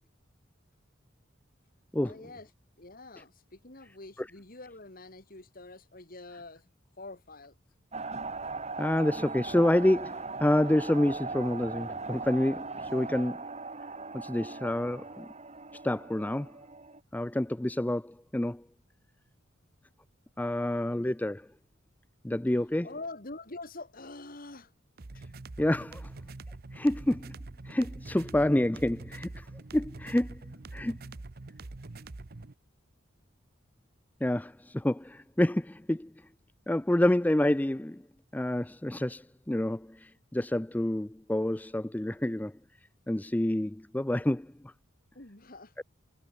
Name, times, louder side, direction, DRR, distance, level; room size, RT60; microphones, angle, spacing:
voice 1, 2.0-2.5 2.8-7.5 22.8-24.7 25.1-25.3 27.7-27.8 45.1-45.7, left 2 dB, 45° left, 2.8 m, -45 dB
sound 1, 7.9-17.0, right 3 dB, 35° right, 3.0 m, -39 dB
voice 2, 8.8-13.5 14.1-15.3 15.8-16.6 17.1-18.6 20.4-21.5 22.2-22.9 25.2-25.3 25.6-26.1 26.7-27.4 27.6-29.5 29.7-30.4 30.7-31.0 34.2-36.1 36.7-38.0 38.3-42.6 43.1-44.7, left 1 dB, 10° left, 0.4 m, -28 dB
sound 2, 25.0-32.5, right 2 dB, 50° right, 0.9 m, -44 dB
head